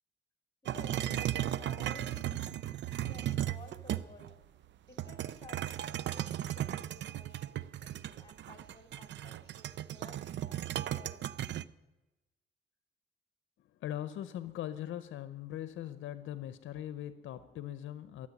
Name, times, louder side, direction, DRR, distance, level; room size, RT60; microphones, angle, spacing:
voice 1, 0.6-4.3 4.8-11.2, left 2 dB, 20° left, 6 dB, 3.4 m, -55 dB
sound 1, 0.7-4.3 5.0-11.6, right 12 dB, 65° right, 0.5 m, -36 dB
voice 2, 13.6-18.3, left 11 dB, 75° left, 13 dB, 0.7 m, -41 dB
14.0 x 7.6 x 9.6 m, 1.0 s
cardioid pair, 90°, 20 cm